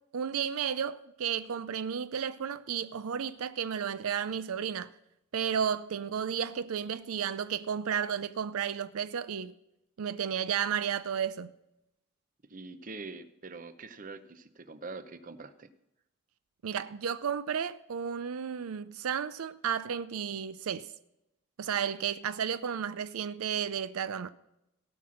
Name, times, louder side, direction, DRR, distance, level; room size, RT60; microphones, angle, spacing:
voice 1, 0.1-4.9 5.3-9.5 10.0-11.5 16.6-20.9 21.6-24.3, right 7 dB, 85° right, 0.5 m, -33 dB
voice 2, 12.5-15.7, right 3 dB, 40° right, 0.7 m, -44 dB
17.0 x 6.0 x 6.3 m
head